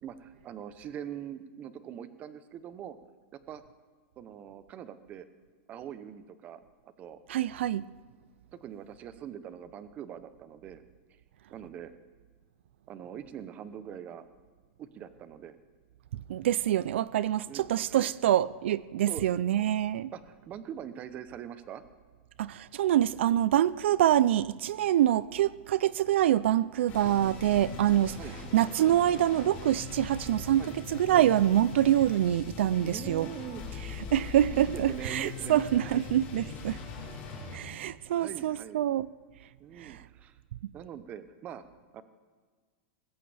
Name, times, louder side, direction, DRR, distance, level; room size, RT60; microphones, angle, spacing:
voice 1, 0.0-3.0 3.5-3.6 4.2-5.2 5.7-7.2 8.5-10.8 11.5-11.9 12.9-14.2 14.8-15.6 17.5-18.1 19.1-19.3 20.1-21.8 28.1-28.3 30.6-30.8 31.1-31.3 32.8-33.6 34.5-36.0 38.1-38.8 39.6-40.4 40.7-41.6 41.9-42.0, right 9 dB, 25° right, 0.7 m, -43 dB
voice 2, 7.3-7.9 16.3-20.1 22.4-28.2 28.5-33.3 34.1-36.8 37.5-39.1 39.8-40.0, right 12 dB, 85° right, 0.4 m, -25 dB
sound 1, 26.9-37.5, left 4 dB, 30° left, 4.9 m, -41 dB
20.0 x 16.0 x 3.4 m
supercardioid pair, 165°, 6 cm